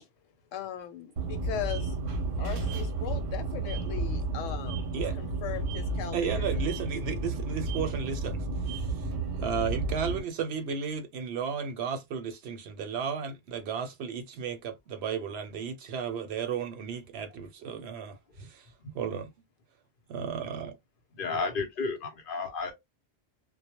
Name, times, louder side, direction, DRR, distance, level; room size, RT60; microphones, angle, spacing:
voice 1, 0.5-2.0 2.4-4.8 5.2-6.6, left 10 dB, 90° left, 1.0 m, -38 dB
sound 1, 1.2-10.2, right 3 dB, 90° right, 1.0 m, -32 dB
voice 2, 6.1-8.4 8.7-9.1 9.4-18.7 18.9-19.3 20.1-20.8, right 6 dB, 65° right, 0.8 m, -34 dB
voice 3, 21.2-22.7, left 4 dB, 55° left, 0.7 m, -32 dB
2.2 x 2.0 x 2.8 m
omnidirectional pair, 1.2 m